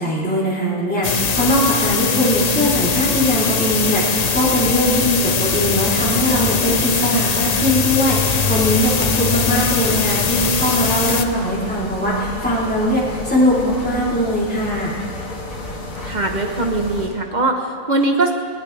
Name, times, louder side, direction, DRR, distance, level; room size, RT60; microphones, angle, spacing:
voice 1, 0.0-15.0, equal, 5° left, -8 dB, 3.5 m, -20 dB
sound 1, 1.0-11.3, left 5 dB, 40° left, 0.7 m, -21 dB
sound 2, 8.1-17.1, left 2 dB, 90° left, 2.4 m, -31 dB
voice 2, 16.0-18.3, right 2 dB, 35° right, 3 dB, 1.2 m, -21 dB
20.0 x 17.0 x 3.4 m, 2.3 s
omnidirectional pair, 1.4 m